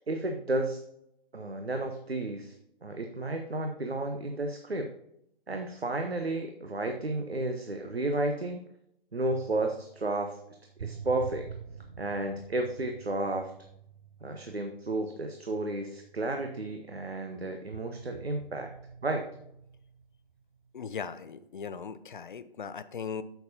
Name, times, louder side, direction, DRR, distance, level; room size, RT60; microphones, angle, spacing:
voice 1, 0.1-0.8 1.3-2.6 2.8-4.9 5.5-8.6 9.1-10.4 10.8-11.5 12.0-13.5 14.2-18.7 19.0-19.2, right 2 dB, 90° right, 4 dB, 0.9 m, -32 dB
sound 1, 9.3-17.2 17.7-20.4 21.2-21.5, right 7 dB, 55° right, 0.7 m, -48 dB
voice 2, 20.7-23.2, left 6 dB, 55° left, 14 dB, 0.6 m, -38 dB
9.1 x 7.0 x 2.8 m, 0.77 s
figure-of-eight pair, 140°, 30 cm